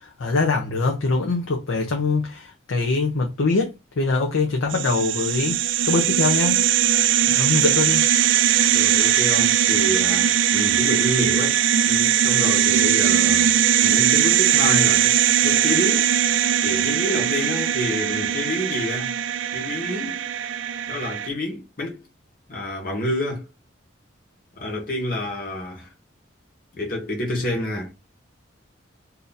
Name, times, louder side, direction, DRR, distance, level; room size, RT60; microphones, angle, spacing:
voice 1, 0.0-6.6 7.3-8.1, left 3 dB, 85° left, 0.7 m, -23 dB
sound 1, 4.7-21.3, right 10 dB, 70° right, 0.3 m, -20 dB
voice 2, 8.7-11.6 11.9-13.5 13.8-15.1 15.4-16.1 16.6-19.1 19.5-20.3 20.9-22.0 22.5-23.5 24.6-25.9 26.7-27.9, left 1 dB, 45° left, 1.2 m, -28 dB
2.8 x 2.6 x 3.9 m
head